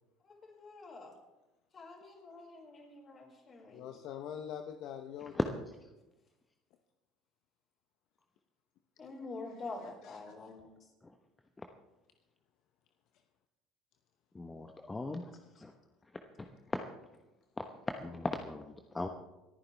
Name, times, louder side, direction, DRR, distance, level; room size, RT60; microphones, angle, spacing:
voice 1, 0.2-1.1 1.7-3.9 9.0-10.7 15.6-15.7, left 3 dB, 35° left, 0 dB, 5.2 m, -47 dB
voice 2, 3.7-5.4 9.5-10.2, left 9 dB, 60° left, 7 dB, 0.8 m, -44 dB
voice 3, 14.3-15.2 15.6-15.7 16.7-16.8 17.6-19.1, left 2 dB, 15° left, 5 dB, 1.1 m, -38 dB
26.5 x 9.9 x 3.4 m, 1.0 s
hypercardioid pair, 70°, 0 cm